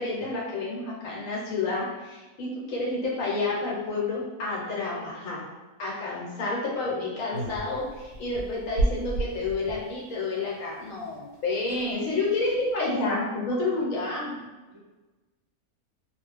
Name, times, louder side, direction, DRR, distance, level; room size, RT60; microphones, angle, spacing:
voice 1, 0.0-5.4 5.8-14.4, left 3 dB, 70° left, -4 dB, 1.2 m, -29 dB
sound 1, 7.3-9.9 11.1-11.2 11.3-11.4 11.6-12.0 12.4-12.7, right 2 dB, 85° right, 1.1 m, -31 dB
voice 2, 13.6-14.1 14.7-14.8, left 1 dB, 30° right, -13 dB, 1.0 m, -50 dB
2.4 x 2.3 x 3.3 m, 1.2 s
omnidirectional pair, 1.5 m